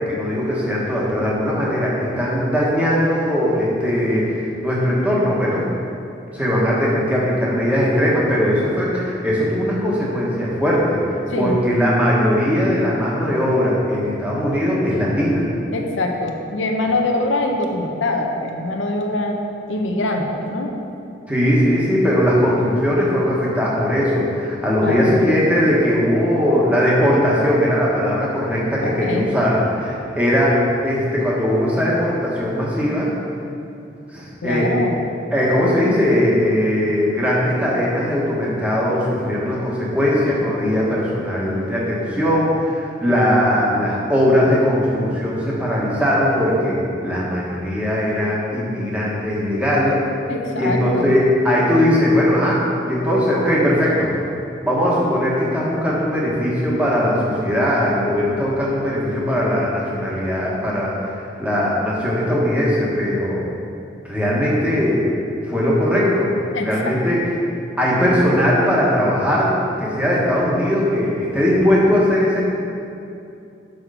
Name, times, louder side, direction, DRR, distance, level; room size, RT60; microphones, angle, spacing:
voice 1, 0.1-5.6 6.3-11.0 11.4-15.4 21.3-30.5 30.8-33.1 34.1-34.7 35.3-50.0 50.5-54.1 54.6-63.5 64.0-65.1 65.4-66.3 66.6-67.2 67.8-69.5 69.8-72.5, equal, 5° right, -6 dB, 1.4 m, -19 dB
voice 2, 15.7-19.4 19.7-20.7 24.8-25.2 28.8-29.3 34.4-35.0 50.3-51.1 66.5-67.0, left 2 dB, 90° left, 2 dB, 0.8 m, -23 dB
6.3 x 6.2 x 5.0 m, 2.6 s
head